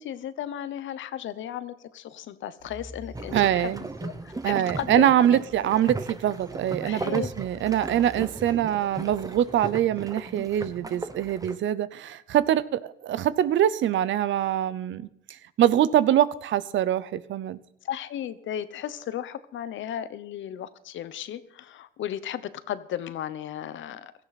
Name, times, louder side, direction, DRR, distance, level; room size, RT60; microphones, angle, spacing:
voice 1, 0.0-5.4 6.8-7.3 17.8-24.2, left 10 dB, 75° left, 14 dB, 1.0 m, -35 dB
sound 1, 2.6-10.0, right 1 dB, 45° right, 5.5 m, -49 dB
sound 2, 3.1-11.6, right 2 dB, 15° right, 1.1 m, -37 dB
voice 2, 3.3-3.8 4.4-17.6, right 11 dB, 70° right, 17 dB, 0.8 m, -24 dB
16.5 x 14.0 x 4.2 m, 0.75 s
cardioid pair, 90°, 20 cm